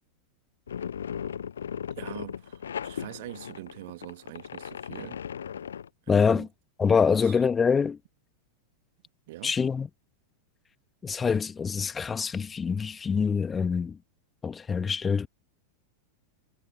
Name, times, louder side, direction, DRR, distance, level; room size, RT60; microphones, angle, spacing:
sound 1, 0.7-5.9, left 8 dB, 65° left, 0.8 m, -37 dB
voice 1, 1.9-5.2 6.1-6.5 7.2-7.3 9.3-9.5 11.1-11.2, right 18 dB, 50° right, 2.0 m, -43 dB
voice 2, 6.1-6.5 6.8-8.0 9.4-9.9 11.0-14.0 14.4-15.3, left 6 dB, 15° left, 1.8 m, -25 dB
figure-of-eight pair, 90°, 0 cm